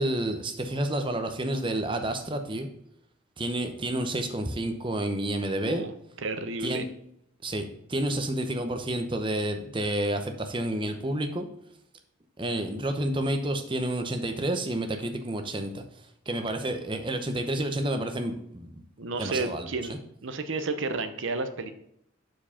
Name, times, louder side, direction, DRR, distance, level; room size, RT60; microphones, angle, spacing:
voice 1, 0.0-2.7 3.4-5.8 6.6-6.9 7.4-11.5 12.4-15.8 16.3-18.7 19.2-20.0, right 1 dB, 25° right, 6 dB, 0.8 m, -30 dB
voice 2, 6.2-6.8 19.0-20.0 20.2-21.7, right 3 dB, 60° right, 9 dB, 0.8 m, -31 dB
7.3 x 4.6 x 5.7 m, 0.74 s
head